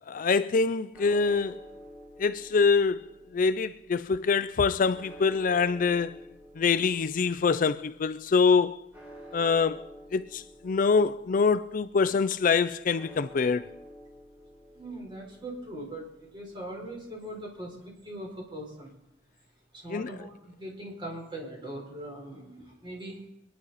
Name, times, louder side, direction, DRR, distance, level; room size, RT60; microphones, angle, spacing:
voice 1, 0.1-1.6 2.2-6.2 6.6-8.8 9.3-13.6 19.9-20.1, left 5 dB, 50° left, 0.4 m, -25 dB
sound 1, 0.9-19.2, equal, 10° right, 5.2 m, -51 dB
voice 2, 14.7-18.9 19.7-23.3, right 1 dB, 30° right, 4.1 m, -41 dB
25.0 x 10.0 x 4.1 m
head